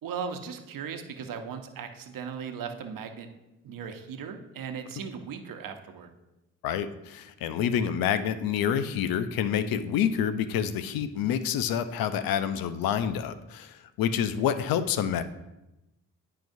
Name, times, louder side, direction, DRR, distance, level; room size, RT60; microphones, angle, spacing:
voice 1, 0.0-3.3 3.6-6.1, right 6 dB, 70° right, 6 dB, 0.9 m, -37 dB
voice 2, 6.6-15.2, left 8 dB, 85° left, 12 dB, 0.6 m, -28 dB
10.5 x 4.7 x 2.6 m, 0.96 s
supercardioid pair, 65°, 34 cm